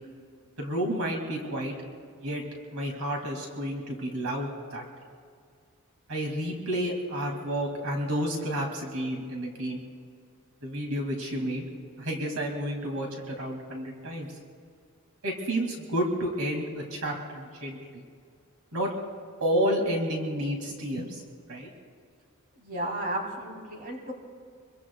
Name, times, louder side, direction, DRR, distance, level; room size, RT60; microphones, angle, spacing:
voice 1, 0.6-1.7 2.2-2.4 2.7-4.8 6.1-9.8 10.6-11.7 12.0-14.3 15.2-18.0 18.7-18.9 19.4-21.2 21.5-21.7, equal, 75° right, 1 dB, 2.3 m, -30 dB
voice 2, 22.6-24.1, right 1 dB, 40° right, 0 dB, 3.0 m, -33 dB
27.5 x 22.5 x 2.3 m, 2.2 s
head